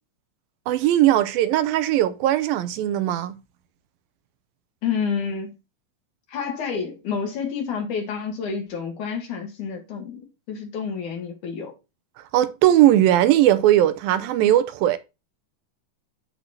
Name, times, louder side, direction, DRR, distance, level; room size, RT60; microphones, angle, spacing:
voice 1, 0.7-3.4 12.3-15.0, right 13 dB, 85° right, 2.4 m, -19 dB
voice 2, 4.8-5.5 6.3-10.2 10.5-11.7, left 6 dB, 60° left, 3.3 m, -29 dB
12.5 x 4.3 x 2.7 m
omnidirectional pair, 4.2 m